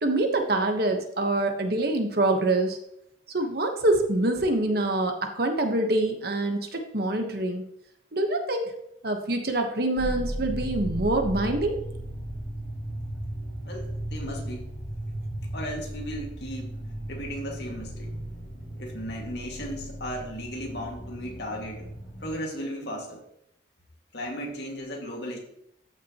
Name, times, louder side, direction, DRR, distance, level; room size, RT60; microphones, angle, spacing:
voice 1, 0.0-2.8 3.3-7.6 8.1-8.6 9.0-11.8, right 2 dB, 55° right, 4 dB, 1.2 m, -25 dB
sound 1, 10.0-22.4, right 1 dB, 40° left, 3.6 m, -36 dB
voice 2, 13.6-14.7 15.5-18.1 18.8-21.9 22.2-23.2 24.1-25.4, equal, 60° left, 0 dB, 2.1 m, -36 dB
14.0 x 6.0 x 3.0 m, 0.76 s
head